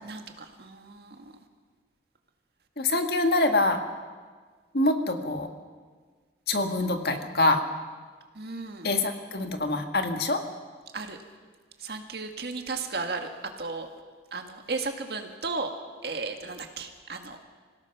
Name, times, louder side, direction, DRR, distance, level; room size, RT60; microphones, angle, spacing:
voice 1, 0.0-1.3 8.4-8.9 10.9-11.2 11.8-13.3 13.6-13.9 14.3-15.7 16.0-17.4, right 3 dB, 60° right, 5 dB, 1.9 m, -35 dB
voice 2, 2.8-3.8 4.7-5.5 6.5-7.6 8.8-10.4, left 2 dB, 60° left, 5 dB, 1.7 m, -25 dB
26.0 x 17.0 x 5.9 m, 1.5 s
head